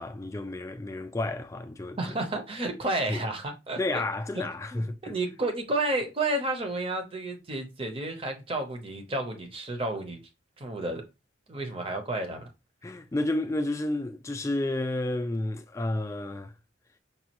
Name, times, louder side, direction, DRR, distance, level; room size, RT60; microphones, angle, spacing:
voice 1, 0.0-2.0 3.1-3.2 3.8-5.1 12.8-16.5, left 2 dB, 15° left, 0.3 m, -31 dB
voice 2, 2.0-4.0 4.3-4.4 4.7-10.2 10.6-11.1 11.5-12.5, right 2 dB, 30° right, 0.7 m, -31 dB
5.3 x 2.3 x 2.9 m
head